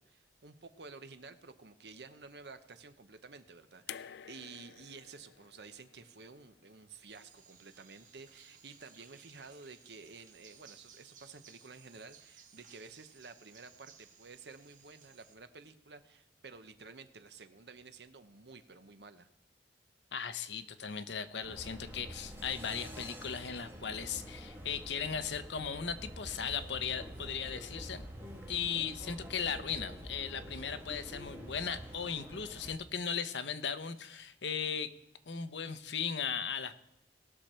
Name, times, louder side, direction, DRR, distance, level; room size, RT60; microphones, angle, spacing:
voice 1, 0.0-19.3, right 4 dB, 70° right, 10 dB, 0.9 m, -52 dB
sound 1, 3.9-7.0 8.2-8.3, left 10 dB, 70° left, 0.3 m, -50 dB
sound 2, 7.1-15.4, right 7 dB, 50° right, 1.1 m, -60 dB
voice 2, 20.1-28.0 28.5-34.9 35.3-36.7, left 7 dB, 85° left, 11 dB, 0.8 m, -37 dB
sound 3, 21.4-32.7, equal, 15° right, 2.2 m, -47 dB
19.0 x 6.5 x 4.4 m, 0.89 s
head